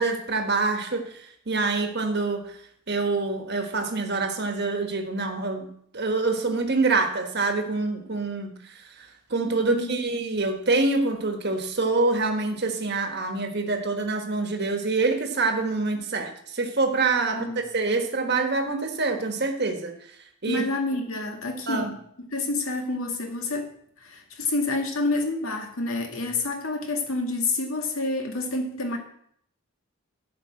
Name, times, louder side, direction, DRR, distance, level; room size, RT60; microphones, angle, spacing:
voice 1, 0.0-2.4 2.9-17.4 17.7-19.9 20.4-20.6 21.7-21.9, right 3 dB, 50° right, 4 dB, 1.4 m, -26 dB
voice 2, 17.3-17.6 20.5-29.0, left 2 dB, 80° left, 3 dB, 2.0 m, -28 dB
11.0 x 5.4 x 7.5 m, 0.68 s
head